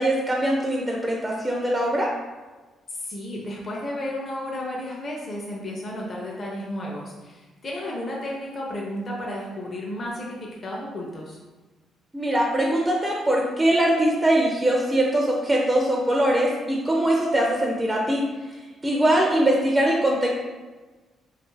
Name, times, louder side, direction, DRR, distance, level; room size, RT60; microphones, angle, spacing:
voice 1, 0.0-2.1 12.1-18.2 18.8-20.3, right 1 dB, 20° right, -1 dB, 0.3 m, -22 dB
voice 2, 2.9-11.4, left 1 dB, 40° left, -3 dB, 0.5 m, -33 dB
2.4 x 2.3 x 3.0 m, 1.3 s
cardioid pair, 90°, 0 cm